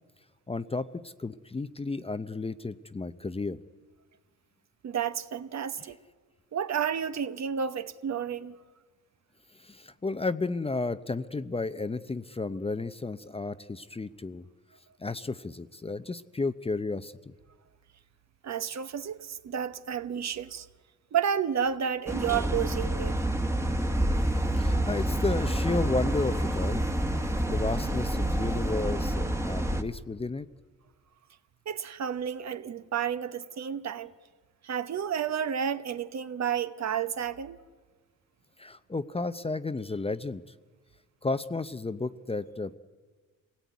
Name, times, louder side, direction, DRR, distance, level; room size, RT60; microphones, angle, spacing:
voice 1, 0.5-3.6 5.8-5.9 9.5-14.5 15.0-17.1 24.5-26.8 27.5-30.5 38.6-40.4 41.2-42.8, left 3 dB, 15° left, 0.7 m, -32 dB
voice 2, 4.8-6.0 6.5-8.6 18.4-20.7 21.1-23.2 31.7-34.1 34.6-37.6, right 8 dB, 50° right, 1.0 m, -31 dB
sound 1, 22.1-29.8, right 1 dB, 10° right, 1.4 m, -28 dB
26.0 x 17.5 x 9.4 m
cardioid pair, 95°, 34 cm